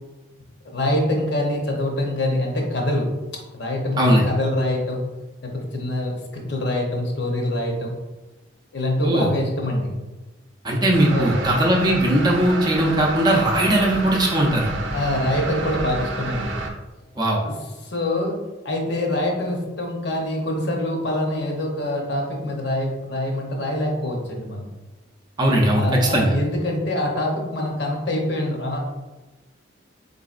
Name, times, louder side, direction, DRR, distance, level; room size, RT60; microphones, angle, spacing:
voice 1, 0.6-3.1 3.5-5.1 5.4-8.0 8.7-9.9 11.1-11.4 14.9-16.5 17.4-17.6 17.8-24.7 25.7-28.9, left 1 dB, 60° left, 0 dB, 0.8 m, -25 dB
voice 2, 4.0-4.3 9.0-9.3 10.6-14.7 17.2-17.4 25.4-26.3, right 1 dB, 20° right, -2 dB, 0.5 m, -19 dB
sound 1, 10.9-16.7, right 2 dB, 75° right, 0.6 m, -30 dB
4.0 x 3.8 x 2.4 m, 1.1 s
head